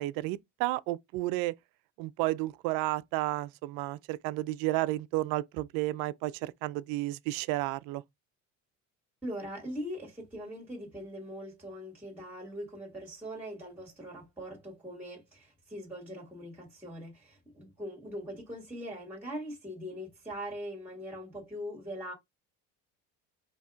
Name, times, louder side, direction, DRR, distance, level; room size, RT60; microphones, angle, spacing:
voice 1, 0.0-1.5 2.0-8.0, right 18 dB, 75° right, 0.5 m, -32 dB
voice 2, 9.2-22.1, equal, 5° right, 2.0 m, -41 dB
4.1 x 2.9 x 3.5 m
cardioid pair, 120°, 35 cm